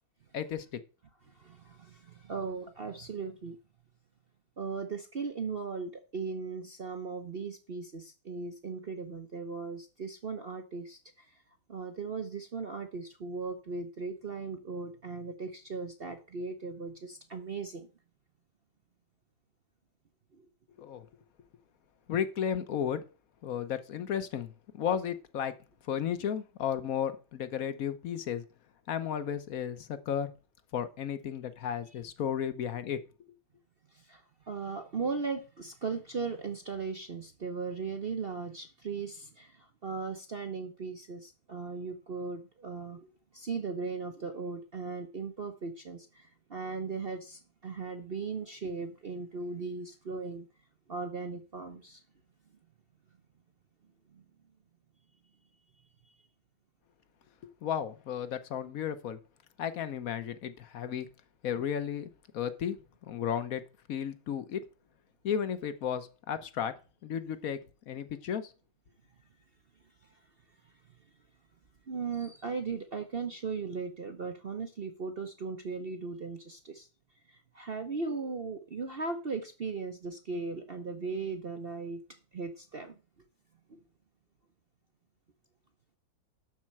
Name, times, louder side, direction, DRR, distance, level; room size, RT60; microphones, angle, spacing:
voice 1, 0.3-0.8 20.8-21.1 22.1-23.0 23.4-25.6 25.8-28.4 28.9-30.3 30.7-33.0 57.6-59.2 59.6-61.1 61.4-62.1 62.3-62.8 63.0-63.6 63.9-64.6 65.2-66.7 67.0-67.6 67.9-68.5, left 8 dB, 55° left, 12 dB, 1.1 m, -33 dB
voice 2, 1.3-3.6 4.6-11.4 11.7-17.9 20.3-20.5 33.9-43.1 43.3-50.5 50.9-52.0 54.1-54.2 70.1-70.2 71.9-76.9 77.3-82.0 82.3-83.0 83.7-83.8, right 4 dB, 45° right, 7 dB, 0.7 m, -38 dB
12.0 x 4.3 x 7.3 m, 0.34 s
omnidirectional pair, 2.1 m